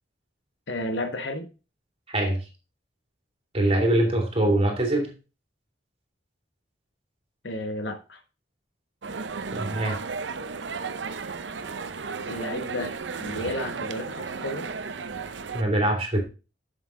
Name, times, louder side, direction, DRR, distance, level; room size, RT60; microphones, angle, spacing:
voice 1, 0.7-1.5 7.4-8.2 12.3-12.9 13.2-14.7, left 1 dB, 75° left, 7 dB, 1.3 m, -32 dB
voice 2, 2.1-2.4 3.5-5.1 9.5-10.0 15.5-16.2, right 1 dB, 35° right, 2 dB, 2.8 m, -23 dB
sound 1, 9.0-15.6, right 5 dB, 80° right, 0.7 m, -34 dB
7.5 x 7.2 x 3.7 m, 0.31 s
head